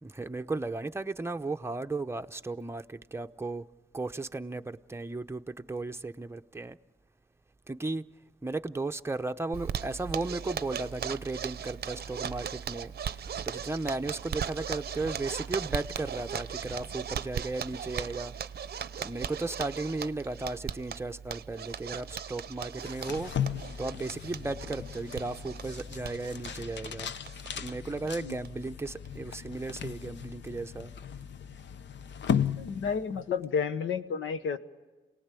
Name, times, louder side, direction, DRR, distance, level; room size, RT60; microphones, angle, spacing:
voice 1, 0.0-3.7 3.9-6.8 7.7-8.0 8.4-18.4 19.0-23.3 23.8-27.1 27.6-30.9, right 3 dB, 15° right, 0.8 m, -35 dB
Zipper (clothing), 9.5-27.7 28.0-28.1 28.4-28.5 28.9-29.3, right 8 dB, 55° right, 0.7 m, -38 dB
sound 1, 22.8-33.3, left 8 dB, 65° left, 0.7 m, -36 dB
voice 2, 32.6-34.6, left 6 dB, 80° left, 1.2 m, -31 dB
27.5 x 18.5 x 8.4 m
cardioid pair, 75°, 20 cm